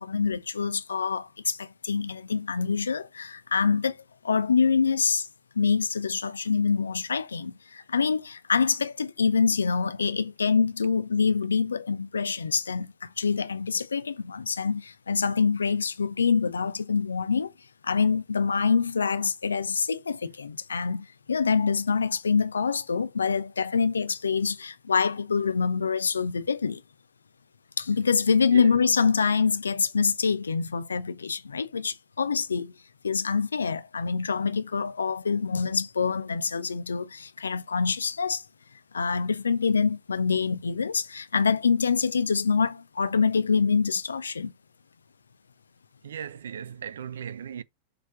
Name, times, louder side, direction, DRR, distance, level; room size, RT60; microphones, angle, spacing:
voice 1, 0.0-4.0 4.2-5.3 5.6-17.5 17.8-26.8 27.8-32.7 33.0-38.4 38.9-44.5, left 5 dB, 75° left, 0.6 m, -25 dB
voice 2, 46.0-47.6, right 8 dB, 65° right, 0.5 m, -37 dB
6.7 x 3.6 x 5.8 m
figure-of-eight pair, 90°, 0 cm